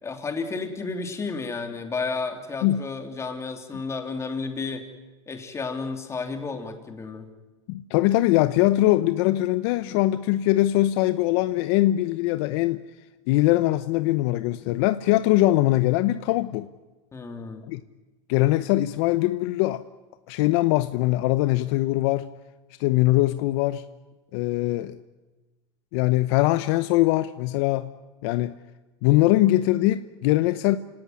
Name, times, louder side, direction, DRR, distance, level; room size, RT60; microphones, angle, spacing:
voice 1, 0.0-4.8 5.3-7.3 17.1-17.7, left 4 dB, 20° left, 5 dB, 3.2 m, -32 dB
voice 2, 7.7-12.8 13.3-16.7 17.7-17.8 18.3-19.8 20.3-22.3 22.8-23.8 24.3-25.0 25.9-27.9 28.2-28.6 29.0-30.8, left 16 dB, 60° left, 13 dB, 0.9 m, -22 dB
28.5 x 17.5 x 9.7 m, 1.2 s
supercardioid pair, 125°, 16 cm